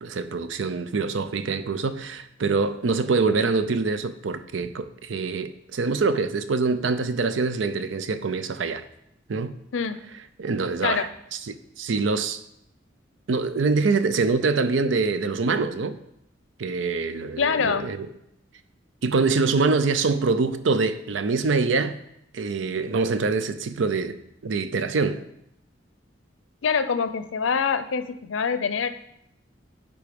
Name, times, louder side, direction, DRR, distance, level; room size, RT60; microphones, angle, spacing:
voice 1, 0.0-8.8 9.3-9.5 10.4-12.4 13.3-16.0 16.6-18.1 19.0-22.0 22.3-25.2, right 4 dB, 70° right, 0.5 m, -25 dB
voice 2, 17.4-17.9 26.6-28.9, left 6 dB, 75° left, 0.5 m, -25 dB
9.8 x 3.6 x 5.2 m
head